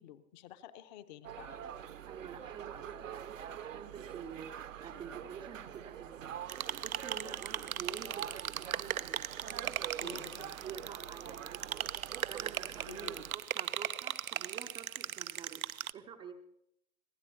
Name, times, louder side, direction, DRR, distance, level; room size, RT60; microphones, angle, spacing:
voice 1, 0.0-1.6 10.0-10.5 12.9-13.2, left 11 dB, 35° left, 12 dB, 0.8 m, -51 dB
sound 1, 1.2-13.4, right 9 dB, 65° right, 0.9 m, -45 dB
voice 2, 2.1-6.4 6.7-9.2 10.0-10.3 10.6-12.0 12.3-15.6 15.9-16.4, right 7 dB, 10° right, 4 dB, 0.6 m, -48 dB
sound 2, 6.5-15.9, right 9 dB, 80° right, 0.6 m, -38 dB
25.5 x 16.5 x 2.8 m, 0.77 s
figure-of-eight pair, 110°, 42 cm